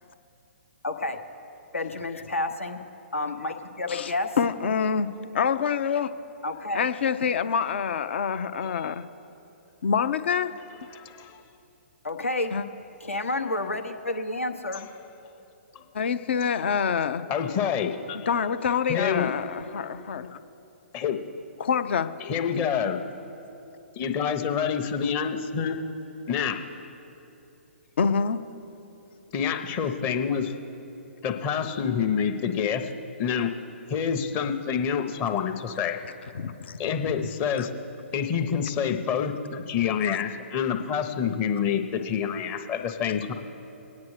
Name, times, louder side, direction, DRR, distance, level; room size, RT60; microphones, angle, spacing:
voice 1, 0.8-1.2 1.7-2.8 3.1-4.4 6.4-6.9 12.0-12.6 13.0-14.9, left 2 dB, 80° left, 6 dB, 1.1 m, -30 dB
voice 2, 4.4-6.1 6.7-9.0 9.8-10.5 12.5-12.6 15.9-17.2 18.3-20.4 21.6-22.1 28.0-28.4 36.3-36.8 37.1-37.3 37.6-37.7 40.1-40.2, left 6 dB, 55° left, 11 dB, 0.6 m, -26 dB
voice 3, 10.9-11.4 15.7-15.8 17.3-18.2 18.9-19.3 20.9-21.2 22.2-23.0 24.0-25.8 26.3-26.6 29.3-30.4 31.2-32.9 33.2-33.5 33.9-36.0 36.8-37.7 38.1-43.3, left 7 dB, 25° left, 6 dB, 0.8 m, -27 dB
22.0 x 9.5 x 3.2 m, 2.9 s
figure-of-eight pair, 125°, 7 cm